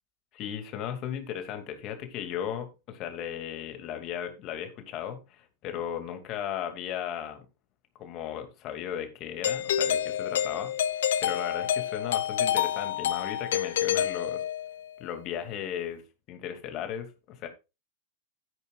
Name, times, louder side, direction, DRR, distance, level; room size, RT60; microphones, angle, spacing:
voice 1, 0.3-7.4 8.0-14.4 15.0-16.0 16.3-17.5, left 9 dB, 35° left, 6 dB, 2.7 m, -36 dB
Doorbell, 9.4-14.9, left 10 dB, 60° left, 0.9 m, -28 dB
13.5 x 10.0 x 2.5 m, 0.28 s
figure-of-eight pair, 90°, 0 cm